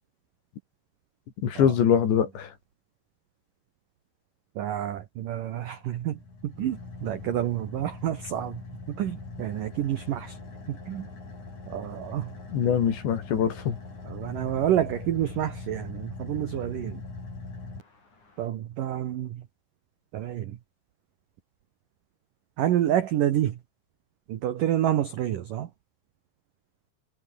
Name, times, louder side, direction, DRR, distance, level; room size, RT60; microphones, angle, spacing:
voice 1, 1.4-2.5 12.5-13.8, left 8 dB, 60° left, 5.4 m, -23 dB
voice 2, 4.6-8.6 8.9-10.4 10.7-11.1 11.7-12.3 14.1-17.0 18.4-19.4 20.1-20.6 22.6-23.6 24.3-25.7, right 11 dB, 85° right, 1.9 m, -28 dB
Car / Idling, 5.5-18.5, left 3 dB, 35° left, 8.8 m, -42 dB
omnidirectional pair, 5.9 m